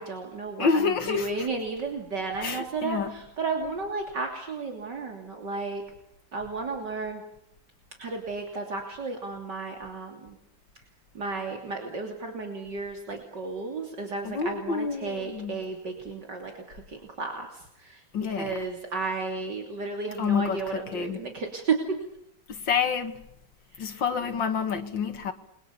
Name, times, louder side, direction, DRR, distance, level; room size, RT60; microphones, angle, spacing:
voice 1, 0.0-5.8 6.3-7.2 8.0-10.4 11.2-18.0 18.3-22.0 23.8-24.0, right 4 dB, 65° right, 3.6 m, -33 dB
voice 2, 0.6-1.5 2.4-3.2 14.2-15.6 18.1-18.6 20.2-21.2 22.5-23.1 23.8-25.3, left 5 dB, 75° left, 2.6 m, -28 dB
29.5 x 22.5 x 7.1 m
omnidirectional pair, 2.0 m